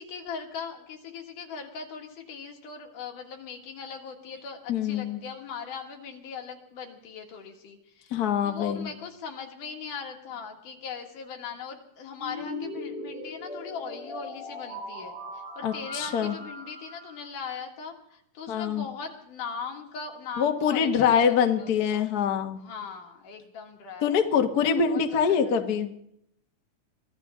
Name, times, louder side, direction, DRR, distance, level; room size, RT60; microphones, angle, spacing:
voice 1, 0.0-8.1 8.4-22.1 22.5-24.1 24.6-25.6, left 5 dB, 85° left, 2 dB, 3.5 m, -40 dB
voice 2, 4.7-5.2 8.1-8.9 15.6-16.4 18.5-18.8 20.4-22.6 24.0-25.9, left 7 dB, 55° left, 5 dB, 1.1 m, -24 dB
sound 1, 12.2-17.3, left 1 dB, 45° right, 8.1 m, -39 dB
24.5 x 15.0 x 3.6 m, 0.73 s
omnidirectional pair, 3.6 m